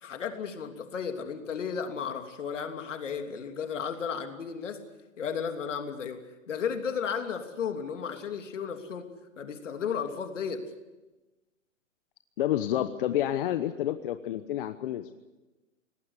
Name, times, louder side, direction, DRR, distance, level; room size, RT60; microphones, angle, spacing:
voice 1, 0.0-4.8 5.2-6.2 6.5-9.1 9.4-10.7, left 6 dB, 70° left, 5 dB, 3.1 m, -34 dB
voice 2, 12.4-15.2, left 12 dB, 45° left, 10 dB, 1.0 m, -29 dB
23.0 x 19.0 x 8.1 m, 1.1 s
hypercardioid pair, 135°, 38 cm